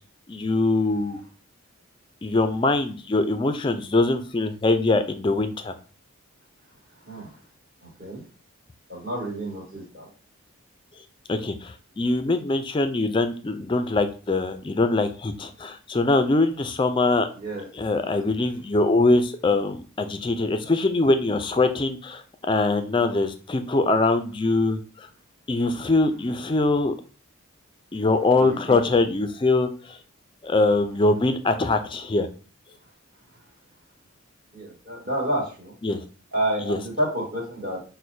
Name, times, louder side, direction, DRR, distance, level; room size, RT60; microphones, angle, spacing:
voice 1, 0.3-1.2 2.2-5.7 11.3-17.3 17.7-25.1 25.5-26.9 27.9-30.0 30.4-32.3 35.8-36.0 36.6-36.8, left 2 dB, 25° left, 8 dB, 0.3 m, -23 dB
voice 2, 7.8-8.2 8.9-10.1 17.4-17.7 28.4-28.8 34.5-35.7 36.3-37.8, right 1 dB, 45° right, -4 dB, 1.6 m, -29 dB
6.1 x 2.1 x 2.6 m, 0.37 s
head